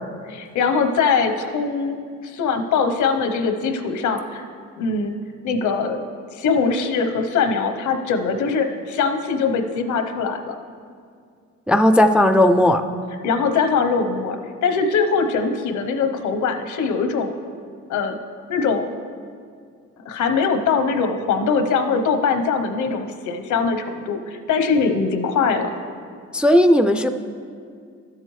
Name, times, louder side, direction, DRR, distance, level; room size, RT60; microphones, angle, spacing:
voice 1, 0.2-4.4 4.8-5.2 5.4-6.0 6.3-10.6 13.2-17.3 17.9-18.2 18.5-18.9 20.1-25.7, left 5 dB, 75° left, 8 dB, 0.9 m, -22 dB
voice 2, 11.7-12.8 26.3-27.1, left 1 dB, 5° right, 8 dB, 0.3 m, -15 dB
12.5 x 7.5 x 3.2 m, 2.2 s
cardioid pair, 90°, 30 cm